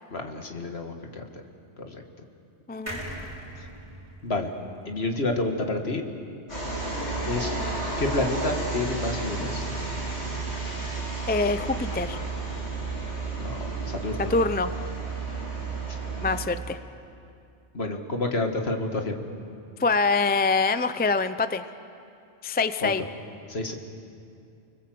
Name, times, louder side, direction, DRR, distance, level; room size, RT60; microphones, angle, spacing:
voice 1, 0.1-1.4 1.8-2.0 3.6-3.7 4.2-4.5 4.9-6.0 7.2-7.6 8.0-9.7 13.3-14.4 17.7-19.2 22.8-22.9 23.5-23.7, left 2 dB, 60° left, 4 dB, 2.1 m, -29 dB
voice 2, 2.7-3.0 10.5-11.0 11.3-12.2 14.2-14.7 16.2-16.8 19.8-21.7 22.4-23.0, left 4 dB, 10° left, 11 dB, 0.4 m, -25 dB
sound 1, 2.9-6.3 6.7-6.8 7.0-7.1, equal, 45° right, 4.8 m, -41 dB
sound 2, 6.5-16.4, right 3 dB, 90° left, 8.3 m, -32 dB
30.0 x 20.5 x 7.8 m, 2.5 s
omnidirectional pair, 1.2 m